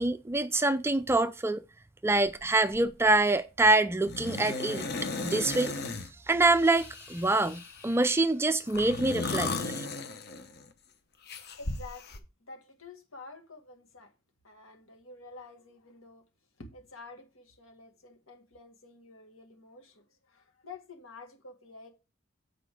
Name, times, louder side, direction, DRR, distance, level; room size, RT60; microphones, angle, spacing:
voice 1, 0.0-1.6 2.0-4.9 5.2-5.8 6.3-9.9, right 2 dB, 10° right, 0.3 m, -25 dB
sound 1, 2.3-2.4 2.7-3.2 4.1-6.1 6.6-8.0 8.7-10.7 11.3-12.2, left 3 dB, 50° left, 0.9 m, -36 dB
voice 2, 11.6-14.1 14.4-16.2 16.6-21.9, left 3 dB, 70° left, 1.9 m, -49 dB
8.1 x 5.0 x 4.8 m
head